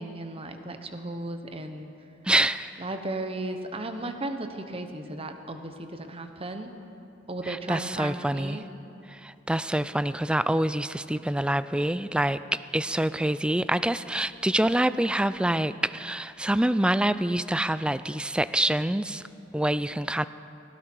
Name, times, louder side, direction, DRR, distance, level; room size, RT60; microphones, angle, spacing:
voice 1, 0.0-1.9 2.8-6.7 7.3-8.7, right 2 dB, 30° right, 7 dB, 1.1 m, -35 dB
voice 2, 2.3-2.7 7.5-8.6 9.1-19.2 19.5-20.3, right 1 dB, 5° right, 14 dB, 0.3 m, -26 dB
18.5 x 17.0 x 4.6 m, 2.8 s
head